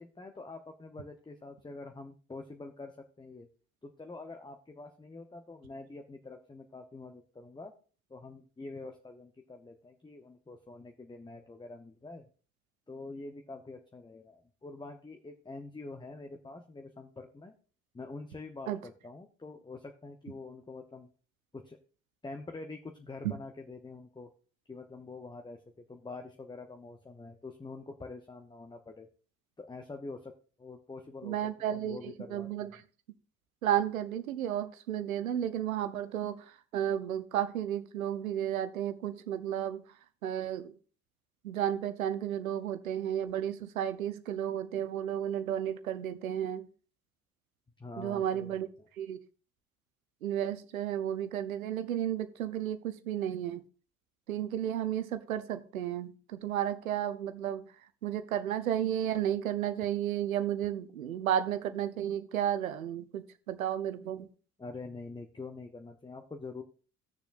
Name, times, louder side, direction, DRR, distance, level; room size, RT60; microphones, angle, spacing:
voice 1, 0.0-3.5 3.8-7.7 8.1-12.2 12.9-17.5 17.9-21.1 21.5-21.8 22.2-24.3 24.7-29.1 29.6-30.3 30.6-31.4 31.7-32.7 47.8-48.9 64.6-66.6, left 3 dB, 10° left, 5 dB, 0.9 m, -46 dB
voice 2, 31.2-32.8 33.6-36.4 36.7-39.8 40.2-40.7 41.4-46.7 48.0-48.7 49.0-49.2 50.2-53.6 54.3-57.7 58.0-64.3, right 10 dB, 80° right, 12 dB, 0.8 m, -33 dB
17.0 x 6.8 x 2.6 m, 0.39 s
figure-of-eight pair, 55°, 42 cm